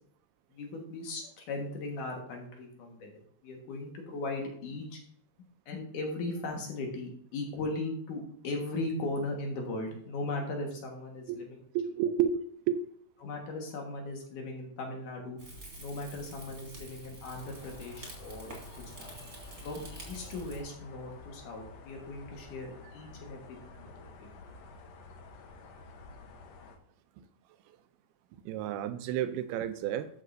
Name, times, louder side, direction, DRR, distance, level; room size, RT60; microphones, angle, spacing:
voice 1, 0.5-3.1 3.4-5.0 5.7-11.6 13.2-15.4 15.8-19.1 19.6-24.3, left 2 dB, 60° left, 1 dB, 2.8 m, -38 dB
voice 2, 11.7-12.8 28.5-30.1, right 9 dB, 85° right, 10 dB, 2.5 m, -31 dB
Rain / Fire, 15.4-20.6, right 1 dB, 25° right, 2.7 m, -47 dB
sound 1, 17.4-26.8, left 4 dB, 75° left, 1.5 m, -51 dB
12.5 x 7.4 x 2.6 m, 0.62 s
omnidirectional pair, 4.5 m